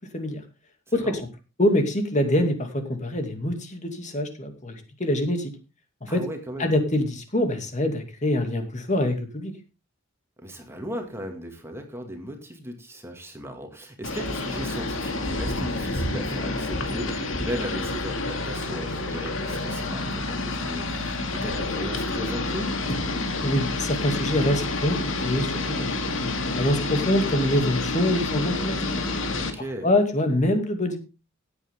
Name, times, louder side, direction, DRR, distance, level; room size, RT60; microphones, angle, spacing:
voice 1, 0.9-1.2 6.1-6.7 10.4-22.7 29.4-29.9, equal, 10° right, 3 dB, 2.2 m, -37 dB
voice 2, 1.6-5.5 6.0-6.2 6.6-9.5 22.9-23.0 23.4-28.9 29.8-31.0, left 1 dB, 35° left, 6 dB, 2.5 m, -25 dB
sound 1, 14.0-29.5, left 2 dB, 65° left, 2.3 m, -28 dB
16.0 x 8.8 x 3.6 m, 0.29 s
head